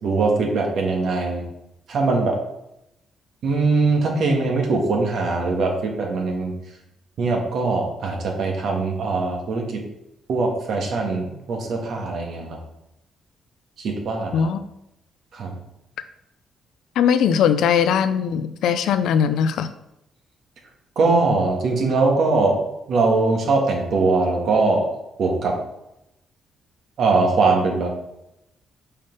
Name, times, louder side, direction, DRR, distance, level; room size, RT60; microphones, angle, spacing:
voice 1, 0.0-1.4 1.9-2.4 3.4-6.5 7.2-9.8 10.3-12.6 13.8-14.5 15.3-15.6 21.0-22.6 22.9-24.9 25.2-25.6 27.0-27.9, right 3 dB, 65° right, 1 dB, 1.8 m, -21 dB
voice 2, 17.0-19.7, left 8 dB, 80° left, 11 dB, 0.5 m, -20 dB
5.5 x 5.5 x 5.4 m, 0.86 s
cardioid pair, 90°, 0 cm